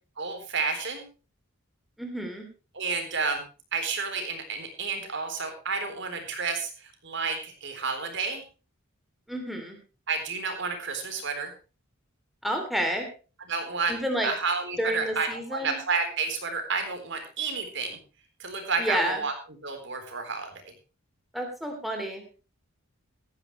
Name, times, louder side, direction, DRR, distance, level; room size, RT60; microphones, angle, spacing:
voice 1, 0.2-1.1 2.7-3.4 3.7-8.4 10.1-11.5 13.5-14.0 14.2-18.0 18.4-19.3 19.6-20.5, right 4 dB, 55° right, 6 dB, 3.9 m, -30 dB
voice 2, 2.0-2.4 9.3-9.8 12.4-13.1 13.9-14.3 14.8-15.8 18.8-19.2 21.3-22.2, equal, ahead, 2 dB, 2.9 m, -30 dB
16.5 x 13.5 x 3.2 m, 0.33 s
head